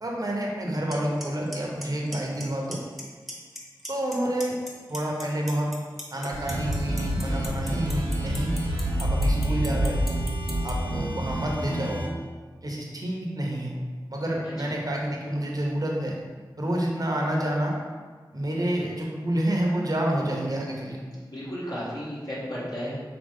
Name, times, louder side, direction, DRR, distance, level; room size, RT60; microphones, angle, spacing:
voice 1, 0.0-2.8 3.9-4.6 4.9-5.7 6.1-8.5 9.0-10.1 10.6-12.0 12.6-13.7 14.1-16.2 16.6-17.7 18.3-21.0, right 1 dB, 50° right, -2 dB, 0.9 m, -28 dB
Clock, 0.9-1.0 1.2-1.6 1.8-2.4 2.7-3.0 3.3-4.1 4.4-10.7, equal, ahead, 1.0 m, -37 dB
sound 1, 6.3-12.1, right 1 dB, 90° right, 0.7 m, -28 dB
voice 2, 21.3-23.0, equal, 55° left, -9 dB, 1.4 m, -34 dB
5.0 x 2.9 x 3.6 m, 1.5 s
wide cardioid pair, 55°, 8 cm